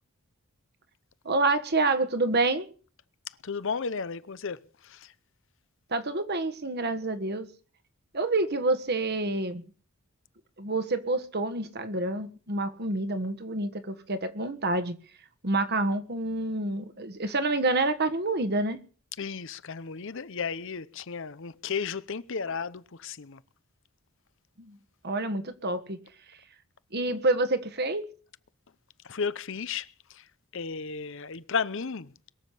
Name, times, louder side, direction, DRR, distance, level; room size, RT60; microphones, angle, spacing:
voice 1, 1.2-2.7 5.9-7.5 8.1-9.6 10.6-15.0 15.4-18.8 24.6-24.8 25.0-26.0 26.3-26.4 26.9-28.1, right 2 dB, 50° right, 1.5 m, -28 dB
voice 2, 3.4-5.1 19.2-23.4 29.0-30.3 30.5-32.1, left 5 dB, 60° left, 0.8 m, -34 dB
22.0 x 7.4 x 8.2 m
head